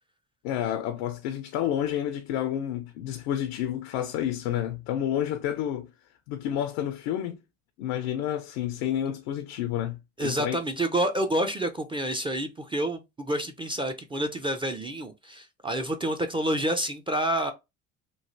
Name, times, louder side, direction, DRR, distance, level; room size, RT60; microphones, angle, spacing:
voice 1, 0.4-5.9 6.3-7.4 7.8-10.6, left 10 dB, 80° left, 0.5 m, -30 dB
voice 2, 10.2-17.5, right 1 dB, 15° right, 0.4 m, -28 dB
3.1 x 2.4 x 2.6 m
supercardioid pair, 80°, 35 cm